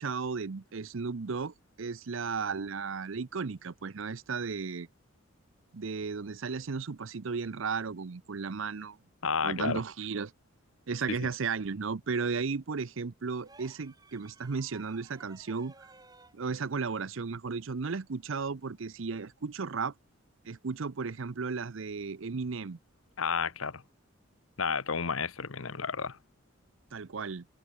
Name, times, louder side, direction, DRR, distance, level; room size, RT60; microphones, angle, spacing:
voice 1, 0.0-4.9 5.7-9.0 9.4-10.3 10.9-15.9 16.3-19.9 20.5-22.8 26.9-27.4, right 5 dB, 70° right, 0.6 m, -34 dB
voice 2, 9.2-9.8 11.1-11.2 23.2-23.8 24.6-26.2, left 5 dB, 85° left, 1.1 m, -31 dB
sound 1, 13.4-16.4 18.1-18.2, right 3 dB, 20° right, 6.4 m, -57 dB
head